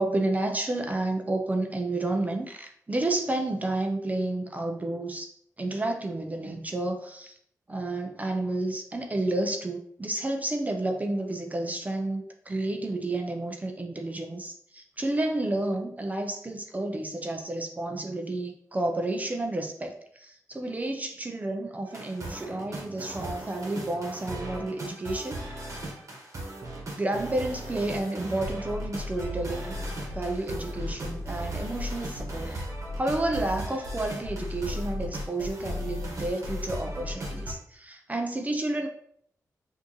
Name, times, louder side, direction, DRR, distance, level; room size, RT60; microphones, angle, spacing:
voice 1, 0.0-5.3 5.6-7.4 7.7-25.4 27.0-29.7 30.1-32.7 33.0-38.9, right 2 dB, 25° right, 4 dB, 0.5 m, -30 dB
sound 1, 21.9-37.5, equal, 55° right, 1.1 m, -36 dB
6.0 x 2.7 x 3.0 m, 0.65 s
wide cardioid pair, 100°, 6 cm